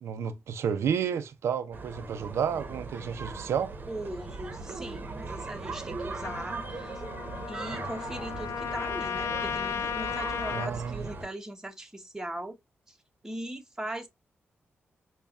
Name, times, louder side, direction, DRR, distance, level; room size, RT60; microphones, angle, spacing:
voice 1, 0.0-3.7 10.5-11.1, right 7 dB, 85° right, 0.5 m, -31 dB
sound 1, 1.7-11.3, right 3 dB, 45° right, 0.8 m, -39 dB
voice 2, 3.9-7.0 7.5-12.6 12.9-13.0 13.2-14.1, right 1 dB, 10° right, 0.9 m, -39 dB
Trumpet, 6.2-10.7, left 8 dB, 85° left, 0.3 m, -35 dB
5.2 x 2.3 x 2.3 m
cardioid pair, 75°, 5 cm